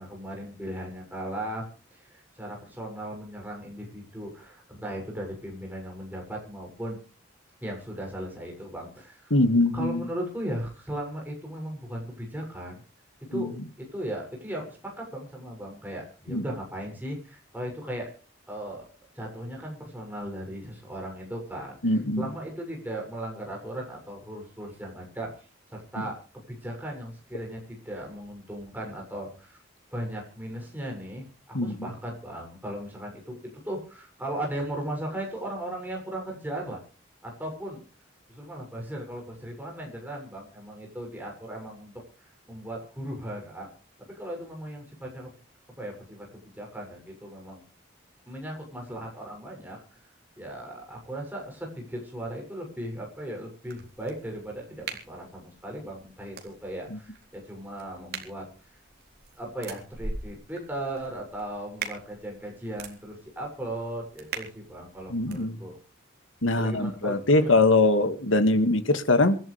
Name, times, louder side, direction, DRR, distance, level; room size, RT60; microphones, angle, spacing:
voice 1, 0.0-1.6 1.9-7.0 7.6-9.3 9.7-12.8 13.3-18.1 18.5-18.9 19.1-26.2 26.5-29.6 29.9-36.8 37.2-37.8 38.3-43.7 44.0-45.3 45.8-47.6 48.3-50.0 50.4-58.8 59.4-65.8 66.6-67.6, right 1 dB, 10° right, 7.1 m, -37 dB
voice 2, 9.3-10.0 13.3-13.5 16.3-16.4 21.8-22.3 31.5-31.9 56.9-57.0 65.1-65.6 66.4-69.4, left 2 dB, 80° left, 2.1 m, -22 dB
sound 1, 53.7-65.4, right 4 dB, 50° right, 3.8 m, -43 dB
26.0 x 12.5 x 3.4 m
head